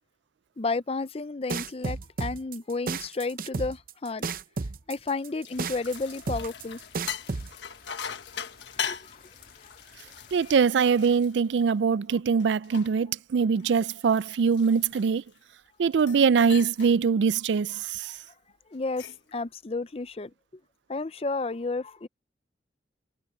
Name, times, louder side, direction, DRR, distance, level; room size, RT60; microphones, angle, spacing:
voice 1, 0.6-4.3 4.9-6.8 8.7-9.2 18.7-19.0 19.3-20.3 20.9-22.1, left 3 dB, 35° left, 0.6 m, -32 dB
sound 1, 1.5-7.5, right 4 dB, 50° right, 0.7 m, -32 dB
sound 2, 5.1-11.9 12.4-15.4 15.9-16.2 16.5-17.0 17.3-17.6 18.7-19.3, left 7 dB, 90° left, 1.4 m, -40 dB
sound 3, 5.5-10.7, left 5 dB, 55° left, 2.3 m, -55 dB
voice 2, 10.3-15.2 15.8-18.1, right 6 dB, 85° right, 0.4 m, -23 dB
head